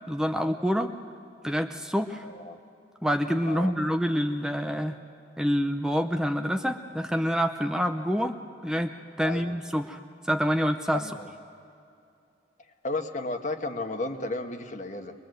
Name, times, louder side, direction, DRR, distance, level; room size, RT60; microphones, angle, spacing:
voice 1, 0.1-0.9 1.4-2.3 3.0-5.0 5.4-8.3 8.6-8.9 9.2-10.0 10.2-11.0, equal, 5° right, 5 dB, 0.6 m, -27 dB
voice 2, 2.2-2.6 3.4-3.7 9.2-9.6 10.9-11.3 12.8-15.1, left 2 dB, 45° left, 5 dB, 1.4 m, -33 dB
24.0 x 21.5 x 7.8 m, 2.6 s
head